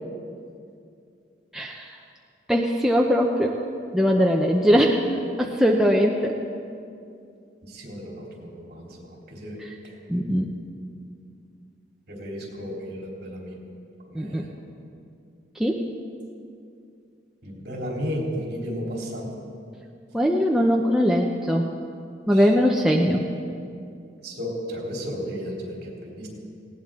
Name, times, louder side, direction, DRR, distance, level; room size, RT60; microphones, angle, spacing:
voice 1, 1.5-1.8 2.5-3.6 3.9-5.0 5.4-6.3 10.1-10.5 14.1-14.4 15.6-15.8 20.1-21.6 22.3-23.2, equal, 5° right, -1 dB, 0.6 m, -20 dB
voice 2, 7.7-9.6 9.8-9.9 12.1-13.5 14.1-14.5 17.4-19.3 22.3-22.6 24.2-26.3, equal, 55° right, -2 dB, 3.6 m, -33 dB
19.0 x 17.5 x 3.7 m, 2.4 s
head